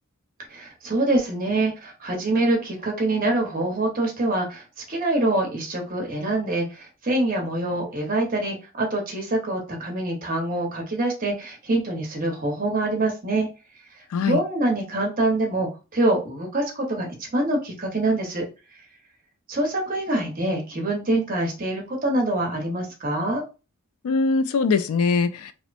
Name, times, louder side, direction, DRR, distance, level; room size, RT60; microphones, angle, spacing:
voice 1, 0.5-13.5 14.2-18.4 19.5-23.4, right 2 dB, 40° right, 0.9 m, -25 dB
voice 2, 14.1-14.4 24.0-25.5, left 4 dB, 80° left, 0.3 m, -22 dB
2.9 x 2.1 x 2.5 m
head